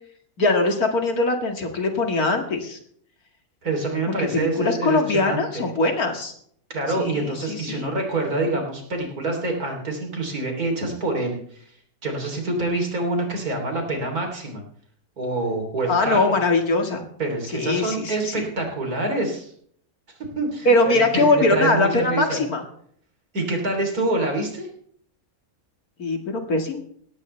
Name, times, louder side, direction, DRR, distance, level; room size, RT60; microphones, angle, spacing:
voice 1, 0.4-2.8 4.1-6.3 7.0-7.9 15.9-17.0 17.5-18.4 20.7-22.6 26.0-26.8, left 2 dB, 90° left, 4 dB, 2.5 m, -22 dB
voice 2, 3.6-5.7 6.7-11.7 12.0-14.6 15.2-16.4 17.2-19.5 20.4-22.4 23.3-24.7, right 2 dB, 90° right, 3 dB, 3.9 m, -26 dB
17.5 x 15.0 x 3.3 m, 0.63 s
omnidirectional pair, 1.5 m